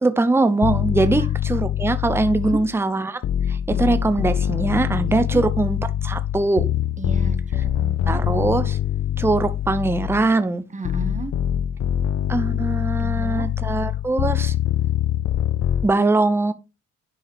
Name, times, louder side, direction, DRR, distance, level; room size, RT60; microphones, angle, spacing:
voice 1, 0.0-3.2 3.5-6.6 8.1-8.8 9.2-10.6 12.3-14.5 15.8-16.5, right 2 dB, 10° right, 0.7 m, -21 dB
sound 1, 0.6-2.8 3.2-10.4 10.9-15.9, left 10 dB, 50° left, 0.5 m, -24 dB
voice 2, 5.1-5.4 7.0-8.2 10.7-11.3 13.0-13.5, right 3 dB, 25° right, 1.1 m, -34 dB
11.0 x 4.7 x 3.0 m
cardioid pair, 90°, 30 cm